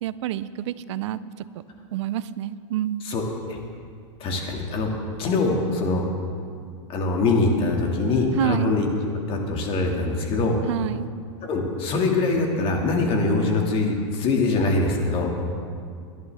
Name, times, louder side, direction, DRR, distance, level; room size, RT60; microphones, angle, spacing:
voice 1, 0.0-1.2 1.9-3.1 8.4-8.7 10.7-11.1, right 13 dB, 65° right, 16 dB, 0.6 m, -27 dB
voice 2, 3.0-3.6 4.2-6.1 6.9-10.7 11.4-15.3, left 3 dB, 35° left, 1 dB, 2.1 m, -23 dB
21.0 x 11.0 x 3.5 m, 2.3 s
hypercardioid pair, 130°, 16 cm